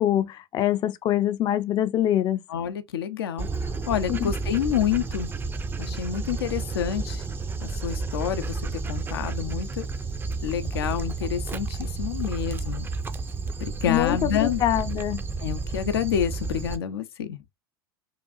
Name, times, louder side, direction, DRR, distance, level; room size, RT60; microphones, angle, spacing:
voice 1, 0.0-2.4 4.1-4.3 13.9-15.2, left 12 dB, 35° left, 0.5 m, -24 dB
voice 2, 2.5-3.5 3.9-5.3 5.8-7.2 7.6-9.9 10.4-12.9 13.6-14.6 15.4-17.4, left 9 dB, 80° left, 0.6 m, -28 dB
Dog, 3.4-16.8, right 3 dB, 15° right, 0.5 m, -31 dB
4.8 x 2.4 x 2.5 m
hypercardioid pair, 100°, 13 cm